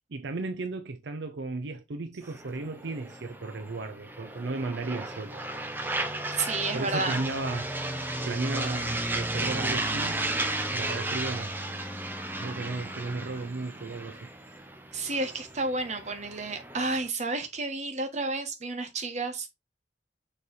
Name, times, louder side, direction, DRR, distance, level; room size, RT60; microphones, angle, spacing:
voice 1, 0.1-5.4 6.7-10.2 10.7-11.6 12.4-14.6, right 3 dB, 70° right, 0.6 m, -35 dB
sound 1, 2.2-17.1, right 1 dB, 10° right, 0.7 m, -34 dB
voice 2, 6.3-7.2 14.9-19.5, right 3 dB, 40° right, 1.3 m, -31 dB
6.8 x 3.3 x 4.2 m
head